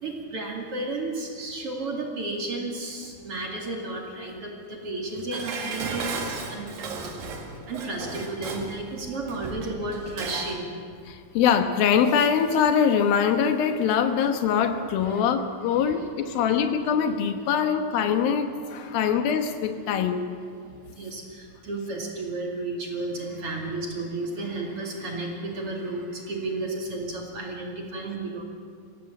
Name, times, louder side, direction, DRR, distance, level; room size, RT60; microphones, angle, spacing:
voice 1, 0.0-6.8 7.0-7.1 7.7-10.7 15.1-15.2 15.7-15.9 16.3-16.4 18.6-19.2 19.8-19.9 20.9-28.4, right 2 dB, 45° right, 0 dB, 3.0 m, -33 dB
Dishes pots and pans, 5.3-10.6 10.9-11.0, right 4 dB, 80° right, 3.8 m, -35 dB
voice 2, 11.1-20.3, left 7 dB, 90° left, 7 dB, 3.1 m, -23 dB
24.5 x 16.5 x 7.3 m, 2.2 s
omnidirectional pair, 4.1 m